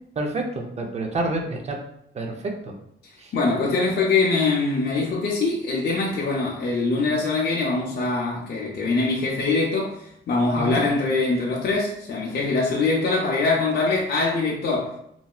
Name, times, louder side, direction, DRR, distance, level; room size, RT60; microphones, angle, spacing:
voice 1, 0.2-1.8 2.1-2.7 3.2-3.3 10.6-10.8, right 2 dB, 30° right, 2 dB, 0.5 m, -28 dB
voice 2, 3.3-10.0 10.3-14.9, left 3 dB, 50° left, -4 dB, 0.5 m, -23 dB
3.0 x 2.7 x 2.3 m, 0.73 s
cardioid pair, 135°, 21 cm